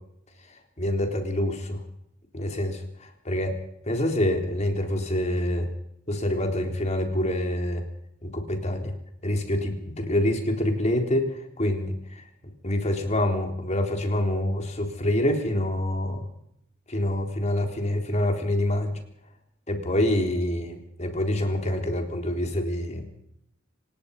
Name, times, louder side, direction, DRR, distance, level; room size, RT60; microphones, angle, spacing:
voice 1, 0.8-1.8 2.3-3.6 3.8-5.7 6.1-7.8 8.2-8.9 9.2-12.2 12.6-16.3 16.9-19.0 19.7-23.1, left 1 dB, 35° left, 4 dB, 4.0 m, -26 dB
28.0 x 17.5 x 5.5 m, 0.74 s
head